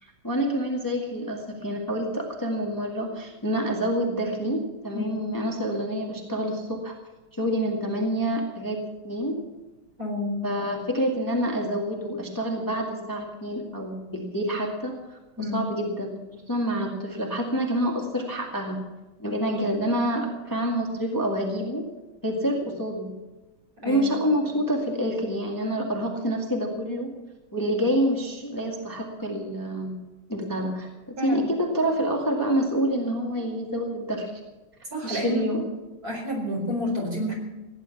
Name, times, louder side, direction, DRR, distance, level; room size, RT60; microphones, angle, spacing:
voice 1, 0.0-6.9 7.3-9.4 10.4-16.1 16.5-18.8 19.2-21.9 22.2-23.1 23.8-27.1 27.5-30.0 30.3-34.4 35.0-35.6, equal, 10° left, 0 dB, 1.9 m, -27 dB
voice 2, 10.0-10.4 15.4-15.6 23.8-24.0 31.2-31.4 34.9-35.4 36.0-37.3, left 1 dB, 45° right, -1 dB, 5.0 m, -29 dB
16.5 x 10.5 x 7.1 m, 1.1 s
omnidirectional pair, 2.2 m